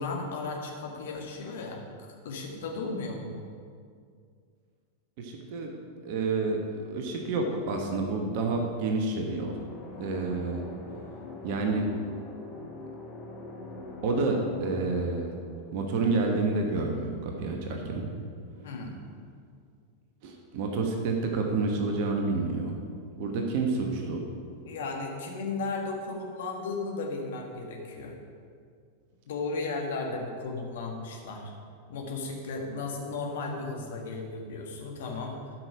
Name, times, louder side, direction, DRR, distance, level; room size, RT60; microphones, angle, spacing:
voice 1, 0.0-1.8 2.2-3.3 18.6-19.0 24.6-28.2 29.3-31.5 31.9-35.4, left 3 dB, 60° left, 1 dB, 1.6 m, -35 dB
voice 2, 5.2-5.7 6.0-9.6 10.0-10.6 11.4-11.9 14.0-15.3 15.7-18.1 20.2-22.8 23.2-24.2, right 3 dB, 45° right, 2 dB, 1.2 m, -29 dB
sound 1, 9.3-16.9, left 2 dB, 15° left, 2.5 m, -43 dB
12.5 x 5.9 x 5.0 m, 2.2 s
figure-of-eight pair, 90°, 0 cm